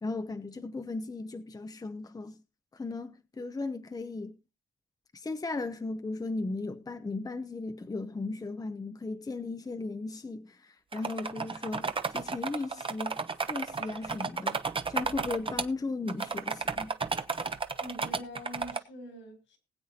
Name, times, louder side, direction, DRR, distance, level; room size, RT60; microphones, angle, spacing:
voice 1, 0.0-2.4 2.7-4.3 5.1-13.2 13.5-14.6 14.9-16.9, left 3 dB, 20° left, 0.8 m, -36 dB
sound 1, 10.9-15.7 16.1-18.8, right 4 dB, 25° right, 1.0 m, -33 dB
voice 2, 17.8-19.6, equal, 80° left, 4.5 m, -44 dB
20.0 x 8.2 x 2.8 m
cardioid pair, 90°, 20 cm